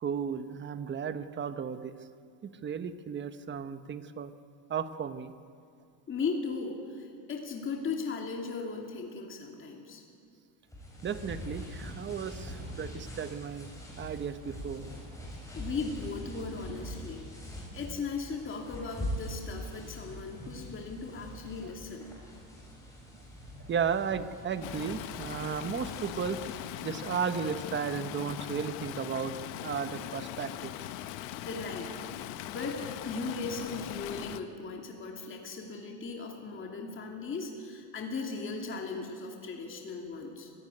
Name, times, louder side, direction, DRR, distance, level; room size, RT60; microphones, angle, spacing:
voice 1, 0.0-1.9 2.4-4.3 4.7-5.3 11.0-13.7 14.0-14.9 23.6-30.9, right 7 dB, 25° right, 11 dB, 1.0 m, -34 dB
voice 2, 6.1-10.0 15.5-17.2 17.5-22.1 31.4-31.9 32.4-40.5, left 4 dB, 25° left, 1 dB, 2.7 m, -37 dB
sound 1, 10.7-26.7, equal, 5° left, 6.4 m, -43 dB
Stream, 24.6-34.4, left 12 dB, 80° left, 1.3 m, -40 dB
25.5 x 16.0 x 9.8 m, 2.4 s
cardioid pair, 155°, 45 cm